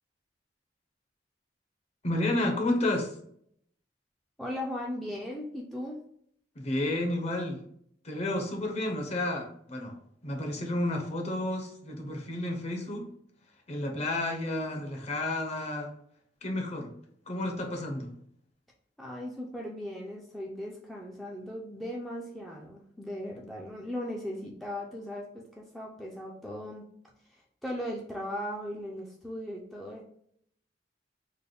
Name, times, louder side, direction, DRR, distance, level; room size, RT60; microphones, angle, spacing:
voice 1, 2.0-3.1 6.6-7.7 8.0-10.0 10.2-13.1 13.7-15.9 16.4-16.9 17.3-18.1, left 1 dB, 35° left, 2 dB, 0.7 m, -31 dB
voice 2, 4.4-6.0 19.0-26.9 27.3-30.0, left 1 dB, ahead, -3 dB, 0.4 m, -38 dB
3.3 x 2.1 x 3.8 m, 0.67 s
head